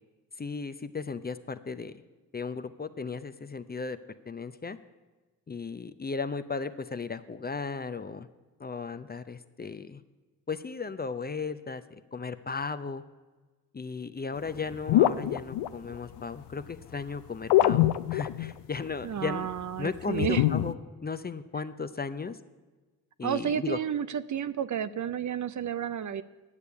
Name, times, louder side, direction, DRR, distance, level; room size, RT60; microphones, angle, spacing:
voice 1, 0.4-1.9 2.3-4.0 4.3-4.8 5.5-8.3 8.6-10.0 10.5-13.0 13.7-19.5 19.8-20.7 21.0-22.4 23.2-23.8, left 4 dB, 25° left, 12 dB, 0.5 m, -35 dB
sound 1, 14.5-16.2 17.5-18.5 19.0-19.1 20.1-20.7, left 13 dB, 85° left, 0.5 m, -23 dB
voice 2, 19.0-20.4 23.2-26.2, right 8 dB, 45° right, 15 dB, 0.5 m, -31 dB
9.8 x 6.7 x 8.5 m, 1.3 s
cardioid pair, 65°, 41 cm